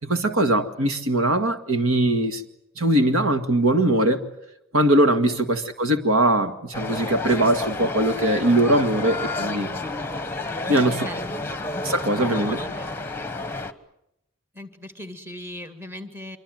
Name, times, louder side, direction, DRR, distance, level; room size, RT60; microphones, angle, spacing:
voice 1, 0.0-2.4 2.8-4.2 4.7-9.8 10.7-11.1 11.8-12.6, right 1 dB, 80° right, 2.0 m, -21 dB
sound 1, 6.7-13.7, left 2 dB, 10° left, 1.3 m, -30 dB
voice 2, 10.6-11.5 12.2-12.9 14.5-16.4, left 1 dB, 10° right, 2.1 m, -38 dB
26.0 x 24.0 x 7.8 m
head